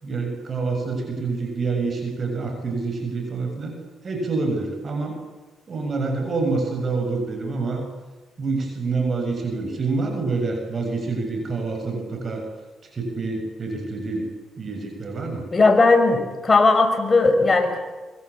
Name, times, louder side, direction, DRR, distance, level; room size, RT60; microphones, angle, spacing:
voice 1, 0.0-3.8 4.0-5.2 5.7-7.8 8.4-12.5 12.9-14.3 14.6-15.5, right 3 dB, 45° right, 4 dB, 6.9 m, -27 dB
voice 2, 15.5-17.8, left 3 dB, 35° left, 6 dB, 5.6 m, -17 dB
24.5 x 24.0 x 8.5 m, 1.2 s
cardioid pair, 75°, 0 cm